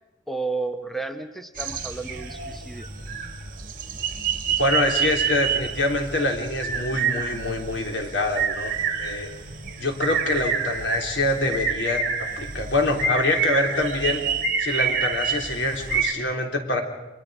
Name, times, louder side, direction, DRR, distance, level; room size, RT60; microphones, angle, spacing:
voice 1, 0.3-2.9, right 3 dB, ahead, 7 dB, 1.0 m, -32 dB
sound 1, 1.6-16.1, right 6 dB, 50° right, 2.8 m, -28 dB
voice 2, 4.6-8.7 9.0-9.3 9.8-12.1 12.4-14.2 14.6-16.8, left 2 dB, 85° left, 2 dB, 3.6 m, -25 dB
29.5 x 24.0 x 5.0 m, 1.0 s
head